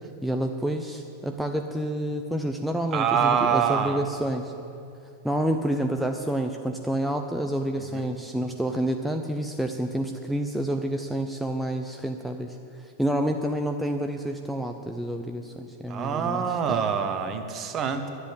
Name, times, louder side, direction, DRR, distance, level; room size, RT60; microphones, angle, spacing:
voice 1, 0.2-4.5 5.2-16.9, right 1 dB, ahead, 4 dB, 0.5 m, -29 dB
voice 2, 2.9-4.0 7.9-8.1 15.9-18.1, right 7 dB, 30° right, 7 dB, 1.0 m, -25 dB
11.5 x 8.0 x 8.0 m, 2.6 s
figure-of-eight pair, 90°, 0 cm